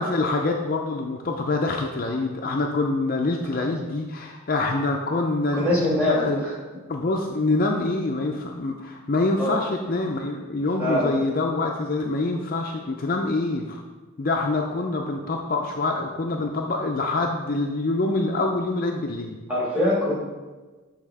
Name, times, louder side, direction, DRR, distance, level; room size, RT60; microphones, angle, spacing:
voice 1, 0.0-6.5 6.9-13.8 14.2-19.4, left 2 dB, 40° left, 2 dB, 0.5 m, -25 dB
voice 2, 5.5-6.3 9.4-9.5 10.8-11.1 19.5-20.2, left 1 dB, 5° right, -6 dB, 2.0 m, -23 dB
7.7 x 3.5 x 4.7 m, 1.3 s
head